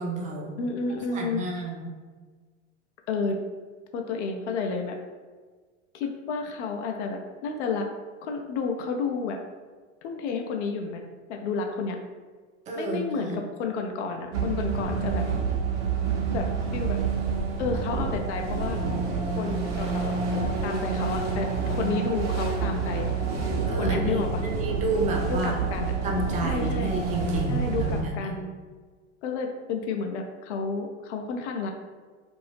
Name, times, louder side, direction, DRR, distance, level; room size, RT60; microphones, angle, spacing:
voice 1, 0.0-0.5 1.1-1.9 12.7-13.4 23.7-25.6 26.0-28.4, right 2 dB, 20° right, -1 dB, 0.5 m, -30 dB
voice 2, 0.6-1.4 3.1-3.4 3.9-5.0 5.9-7.9 8.2-9.4 10.0-11.0 11.3-12.0 12.8-15.3 16.3-16.5 16.7-17.0 17.6-18.8 19.4-23.1 23.8-24.4 25.3-25.9 26.4-26.9 27.5-28.5 29.2-31.7, left 4 dB, 70° left, 3 dB, 0.5 m, -31 dB
sound 1, 14.3-28.0, right 5 dB, 70° right, 0.8 m, -28 dB
2.7 x 2.6 x 3.4 m, 1.4 s
hypercardioid pair, 95°, 37 cm